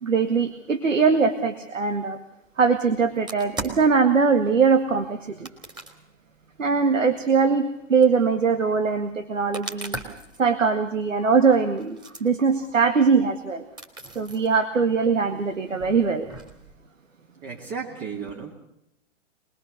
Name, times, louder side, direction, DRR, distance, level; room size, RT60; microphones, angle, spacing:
voice 1, 0.0-2.2 2.6-5.5 6.6-10.0 10.4-13.7 14.2-16.3, right 5 dB, 90° right, 8 dB, 1.9 m, -21 dB
sound 1, 3.2-3.9 5.4-6.0 7.1-7.2 8.0-8.1 9.5-10.4 11.2-11.3 11.8-12.2 12.7-12.8 13.2-13.3 13.8-14.5 15.2-16.8, right 2 dB, 10° right, 3.4 m, -37 dB
voice 2, 17.4-18.5, right 5 dB, 30° right, 0 dB, 3.2 m, -34 dB
24.5 x 21.5 x 6.7 m, 0.82 s
hypercardioid pair, 120°, 38 cm